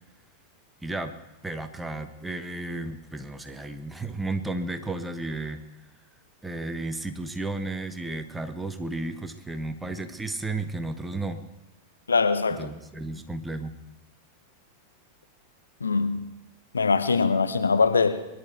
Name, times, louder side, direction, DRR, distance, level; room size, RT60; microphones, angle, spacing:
voice 1, 0.8-1.1 1.4-5.6 6.4-11.4 12.5-13.8, right 2 dB, 10° right, 1.3 m, -33 dB
voice 2, 12.1-12.7 15.8-16.3 16.7-18.3, left 4 dB, 75° left, 0.9 m, -22 dB
23.0 x 11.0 x 4.6 m
figure-of-eight pair, 90°, 0 cm